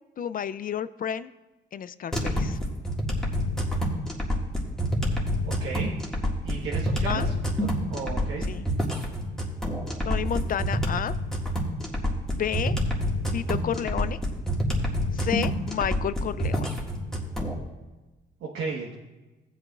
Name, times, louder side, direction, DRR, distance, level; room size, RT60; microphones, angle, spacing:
voice 1, 0.2-1.3 1.7-2.6 7.0-7.3 8.5-8.7 10.0-11.1 12.3-12.8 13.3-14.2 15.1-16.7, left 9 dB, 45° left, 16 dB, 0.5 m, -30 dB
sound 1, 2.1-17.5, equal, ahead, 1.9 m, -27 dB
voice 2, 5.4-5.9 6.4-7.3 7.9-8.4 18.4-18.9, right 4 dB, 85° right, -4 dB, 1.3 m, -33 dB
16.5 x 8.0 x 2.4 m, 1.1 s
cardioid pair, 90°, 20 cm